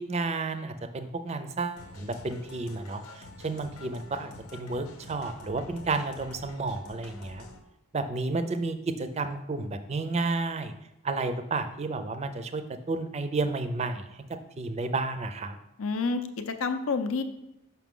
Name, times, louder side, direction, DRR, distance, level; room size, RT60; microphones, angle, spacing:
voice 1, 0.0-7.5 7.9-10.7 11.0-14.2 14.6-15.6, right 3 dB, 30° right, 9 dB, 0.4 m, -31 dB
sound 1, 1.8-7.6, left 2 dB, 90° left, 0.9 m, -47 dB
voice 2, 15.8-17.2, left 4 dB, 70° left, 9 dB, 0.5 m, -29 dB
5.9 x 5.7 x 3.7 m, 0.88 s
head